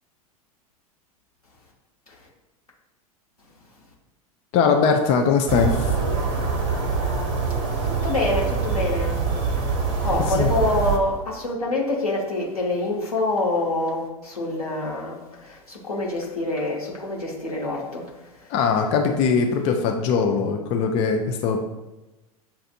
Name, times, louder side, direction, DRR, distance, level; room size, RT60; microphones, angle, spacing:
voice 1, 4.5-5.9 10.4-10.5 18.5-21.6, left 5 dB, 35° left, 3 dB, 0.4 m, -21 dB
sound 1, 5.5-11.0, right 5 dB, 45° right, 0.7 m, -24 dB
voice 2, 7.8-18.5, left 2 dB, 80° left, -3 dB, 1.1 m, -26 dB
7.1 x 2.5 x 2.5 m, 1.1 s
figure-of-eight pair, 85°, 19 cm